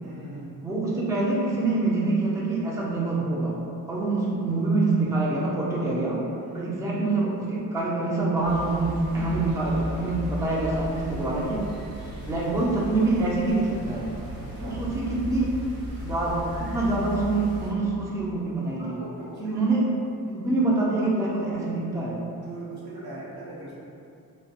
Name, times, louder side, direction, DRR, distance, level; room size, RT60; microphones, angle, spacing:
voice 1, 0.0-0.5 6.4-6.7 14.4-14.8 18.8-19.7 22.4-23.7, right 1 dB, 85° right, -6 dB, 0.7 m, -41 dB
voice 2, 0.6-3.6 3.9-6.2 6.5-11.7 12.2-14.1 14.6-15.6 16.0-19.0 19.4-19.8 20.2-22.2, right 2 dB, 10° right, -5 dB, 0.3 m, -25 dB
sound 1, 8.4-17.7, equal, 65° right, 1.0 m, -36 dB
2.2 x 2.1 x 2.8 m, 2.5 s
cardioid pair, 100°, 37 cm